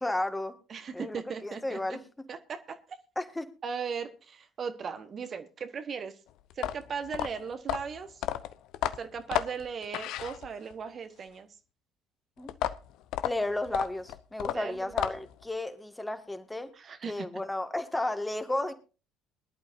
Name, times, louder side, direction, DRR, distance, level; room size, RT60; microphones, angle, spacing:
voice 1, 0.0-0.5 0.9-2.0 3.2-3.5 12.4-12.6 13.2-16.7 17.1-18.7, left 1 dB, 10° left, 8 dB, 1.8 m, -33 dB
voice 2, 0.7-1.8 2.3-2.8 3.6-6.1 6.6-8.2 9.0-11.5 14.5-14.9 16.7-17.3, right 6 dB, 40° right, 9 dB, 1.2 m, -37 dB
sound 1, 6.5-10.8 12.5-15.4, left 13 dB, 60° left, 0.7 m, -33 dB
22.0 x 11.5 x 2.6 m, 0.34 s
figure-of-eight pair, 55°, 0 cm